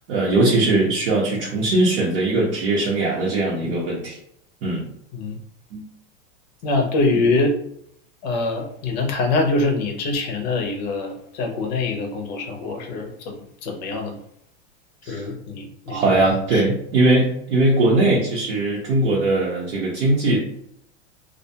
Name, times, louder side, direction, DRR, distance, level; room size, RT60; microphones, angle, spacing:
voice 1, 0.1-4.2 4.6-4.9 5.7-5.8 7.1-7.2 15.0-15.3 15.9-20.4, right 2 dB, 85° right, -6 dB, 0.9 m, -20 dB
voice 2, 6.6-7.5 8.2-14.2 15.1-16.0 16.5-16.6, left 3 dB, 40° left, 2 dB, 0.5 m, -24 dB
2.3 x 2.2 x 2.7 m, 0.72 s
supercardioid pair, 175°, 33 cm